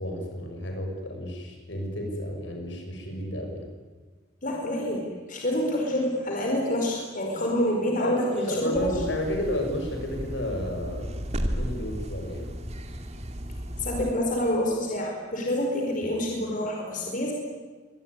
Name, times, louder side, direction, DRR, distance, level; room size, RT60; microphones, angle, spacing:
voice 1, 0.0-3.6 8.0-11.1 11.5-12.5, left 1 dB, 70° left, 3 dB, 6.2 m, -32 dB
voice 2, 4.4-8.9 13.8-17.3, left 1 dB, 45° left, 0 dB, 5.0 m, -27 dB
sound 1, 8.7-14.1, equal, 35° right, 2.4 m, -34 dB
25.0 x 20.5 x 9.8 m, 1.4 s
head